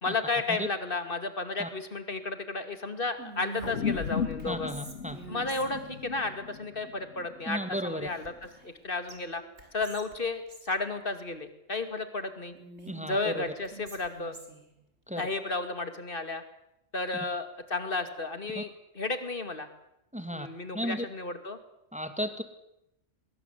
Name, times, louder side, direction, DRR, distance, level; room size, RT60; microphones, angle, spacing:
voice 1, 0.0-4.7 5.3-9.4 9.7-12.5 13.0-14.3 15.2-16.4 16.9-18.7 19.0-19.7 20.3-21.6, left 3 dB, 45° left, 9 dB, 2.5 m, -33 dB
Whispering, 3.2-6.0 8.1-8.8 9.1-9.2 9.6-10.7 12.5-14.7, right 4 dB, 65° right, 4.1 m, -46 dB
sound 1, 3.6-8.3, left 6 dB, 75° left, 1.7 m, -36 dB
voice 2, 4.5-5.2 7.5-8.1 12.9-13.4 15.1-15.2 18.5-18.6 20.1-20.5 20.7-21.1 21.9-22.4, equal, 5° right, 9 dB, 2.0 m, -34 dB
23.0 x 22.0 x 8.3 m, 0.85 s
omnidirectional pair, 1.2 m